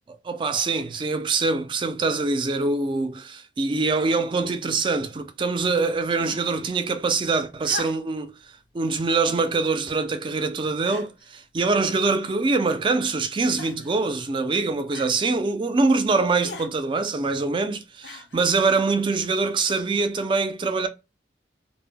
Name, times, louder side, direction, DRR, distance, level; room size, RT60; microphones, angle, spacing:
voice 1, 0.2-8.3 8.7-20.9, right 3 dB, 30° right, 0.3 m, -24 dB
sound 1, 6.1-6.6 7.6-8.3 9.2-9.5 10.3-10.4 10.8-11.3 12.1-12.7 13.6-14.0 14.9-15.2 16.4-16.7 18.0-18.5 19.5-19.6, left 4 dB, 75° left, 0.5 m, -40 dB
2.1 x 2.0 x 3.4 m
head